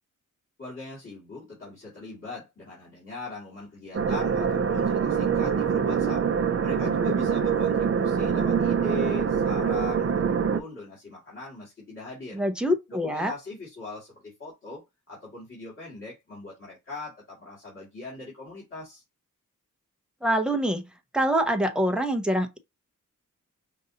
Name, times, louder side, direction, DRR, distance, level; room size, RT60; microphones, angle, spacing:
voice 1, 0.6-6.3 6.6-12.4 12.9-19.0, left 3 dB, 40° left, 2.3 m, -40 dB
sound 1, 3.9-10.6, right 7 dB, 45° right, 0.5 m, -24 dB
voice 2, 12.3-13.3 20.2-20.8 21.1-22.6, equal, 5° right, 0.6 m, -25 dB
5.3 x 2.6 x 2.7 m
wide cardioid pair, 160°, 32 cm